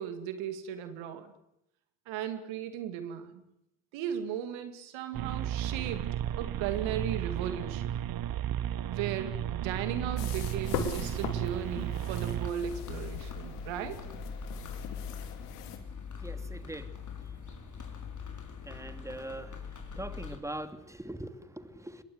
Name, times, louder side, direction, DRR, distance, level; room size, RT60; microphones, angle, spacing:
voice 1, 0.0-1.3 2.1-3.4 3.9-6.1 6.4-8.0 8.9-14.0, right 9 dB, 75° right, 10 dB, 2.4 m, -36 dB
sound 1, 5.1-12.5, right 10 dB, 50° right, 0.9 m, -34 dB
sound 2, 10.2-15.8, left 7 dB, 90° left, 2.5 m, -40 dB
sound 3, 12.4-20.4, left 5 dB, 40° left, 5.6 m, -42 dB
voice 2, 16.2-16.9 18.7-19.5 20.0-22.0, right 1 dB, 5° right, 10 dB, 2.7 m, -41 dB
24.5 x 21.5 x 8.0 m, 0.81 s
hypercardioid pair, 50°, 46 cm